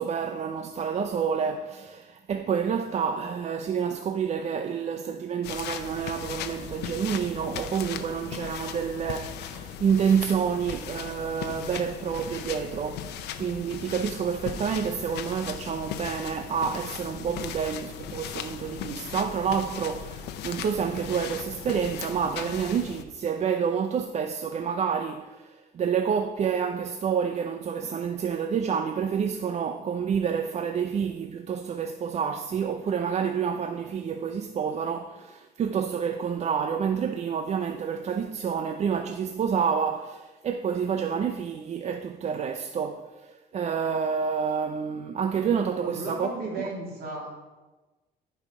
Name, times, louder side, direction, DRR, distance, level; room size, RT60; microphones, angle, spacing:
voice 1, 0.0-46.3 46.6-46.7, right 7 dB, 40° right, 0.6 m, -28 dB
sound 1, 5.4-23.0, left 8 dB, 80° left, 0.8 m, -38 dB
voice 2, 45.8-47.5, right 2 dB, 60° right, 3.2 m, -35 dB
14.0 x 5.5 x 4.7 m
cardioid pair, 110°, 17 cm